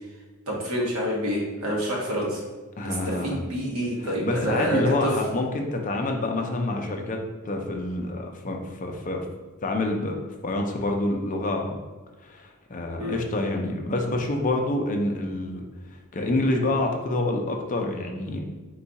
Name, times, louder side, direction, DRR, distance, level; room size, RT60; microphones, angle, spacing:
voice 1, 0.5-2.4 2.8-5.1 13.0-13.2, equal, 80° right, -3 dB, 1.3 m, -27 dB
voice 2, 2.8-3.4 4.0-9.3 9.6-10.2 10.4-11.7 12.2-15.6 16.1-18.5, left 2 dB, 35° left, 3 dB, 0.5 m, -27 dB
4.5 x 2.4 x 4.0 m, 1.3 s
head